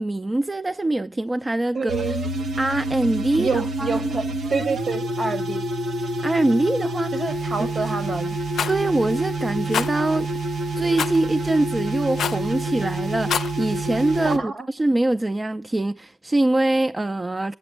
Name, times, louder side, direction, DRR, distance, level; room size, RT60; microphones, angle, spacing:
voice 1, 0.0-1.9 2.6-4.1 6.2-7.2 7.6-7.7 8.7-10.3 10.7-17.5, right 2 dB, 30° right, 0.5 m, -23 dB
voice 2, 1.7-2.2 3.4-5.6 7.1-8.4 14.2-14.7, right 4 dB, 65° right, 2.3 m, -27 dB
sound 1, 1.9-14.4, right 1 dB, 85° right, 1.5 m, -27 dB
Rattle, 8.5-8.8 9.7-9.9 11.0-11.2 12.2-12.5 13.1-13.5, left 8 dB, 85° left, 0.5 m, -25 dB
7.9 x 7.8 x 8.2 m
cardioid pair, 50°, 0 cm